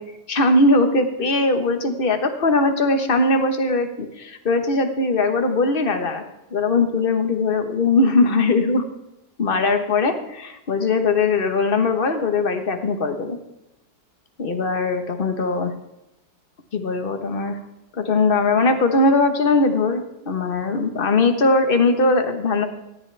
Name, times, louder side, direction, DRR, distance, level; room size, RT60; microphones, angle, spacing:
voice 1, 0.3-6.2 6.5-8.8 9.4-13.4 14.4-15.7 16.7-17.6 18.0-22.7, left 3 dB, 35° left, 6 dB, 1.3 m, -20 dB
17.0 x 11.0 x 3.4 m, 0.94 s
omnidirectional pair, 1.8 m